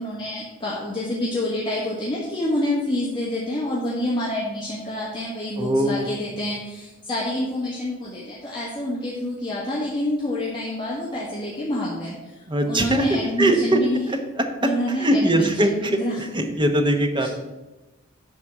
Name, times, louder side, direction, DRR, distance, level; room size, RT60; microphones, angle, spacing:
voice 1, 0.0-14.1 14.6-16.2 17.2-17.3, left 1 dB, 25° left, -7 dB, 1.8 m, -27 dB
voice 2, 5.6-6.1 12.5-13.1 13.4-14.2 14.6-17.3, right 1 dB, 25° right, 5 dB, 1.0 m, -21 dB
11.0 x 4.2 x 7.3 m, 1.1 s
head